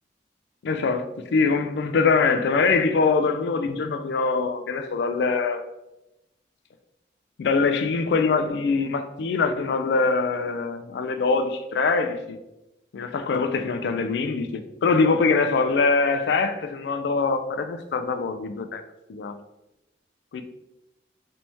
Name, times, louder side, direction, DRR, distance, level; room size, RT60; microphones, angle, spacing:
voice 1, 0.6-5.6 7.4-12.4 12.9-18.8 19.1-19.3 20.3-20.4, left 4 dB, 70° left, 0.3 m, -23 dB
3.3 x 2.7 x 2.9 m
head